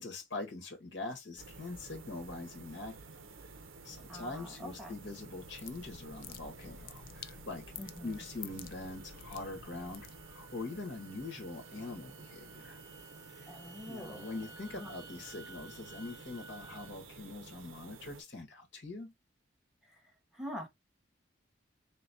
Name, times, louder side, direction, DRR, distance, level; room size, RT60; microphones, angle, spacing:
voice 1, 0.0-3.2 3.8-7.7 8.0-12.8 13.4-13.5 13.8-19.1, left 2 dB, 60° left, 1.4 m, -43 dB
sound 1, 1.4-18.2, right 4 dB, 90° right, 0.7 m, -52 dB
voice 2, 4.1-5.0 7.8-8.2 13.5-14.3 14.7-14.9 19.8-20.7, equal, ahead, 1.1 m, -45 dB
sound 2, 5.1-10.5, left 8 dB, 45° left, 0.4 m, -51 dB
sound 3, 7.8-16.9, right 2 dB, 15° right, 0.5 m, -57 dB
3.9 x 3.1 x 2.6 m
head